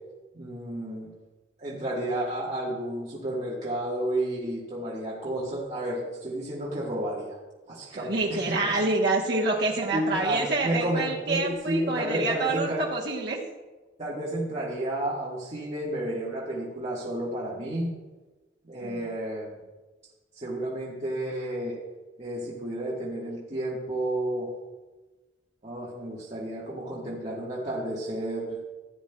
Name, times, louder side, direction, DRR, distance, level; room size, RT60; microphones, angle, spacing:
voice 1, 0.3-1.1 1.6-7.4 7.7-8.7 9.9-12.9 14.0-17.9 18.6-19.5 20.4-21.8 22.2-24.5 25.6-28.6, right 1 dB, 35° right, -6 dB, 1.4 m, -31 dB
voice 2, 7.9-13.4 18.8-19.0, right 2 dB, 60° right, -3 dB, 1.0 m, -27 dB
14.5 x 9.2 x 2.2 m, 1.2 s
head